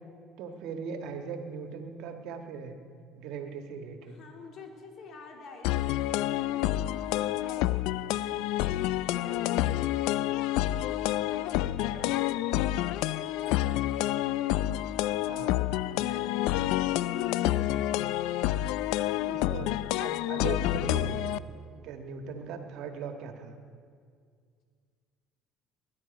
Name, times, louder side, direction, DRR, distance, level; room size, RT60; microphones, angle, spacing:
voice 1, 0.4-2.8 3.2-4.2 11.9-12.2 15.2-15.6 18.6-18.7 19.3-21.3 21.7-23.6, right 6 dB, 65° right, 5 dB, 1.5 m, -39 dB
voice 2, 4.0-10.7 11.3-14.2 15.7-17.7 22.2-22.6, left 3 dB, 55° left, 1 dB, 3.2 m, -49 dB
sound 1, 5.6-21.4, left 14 dB, 75° left, 0.4 m, -28 dB
20.5 x 10.5 x 5.2 m, 2.1 s
hypercardioid pair, 75°, 0 cm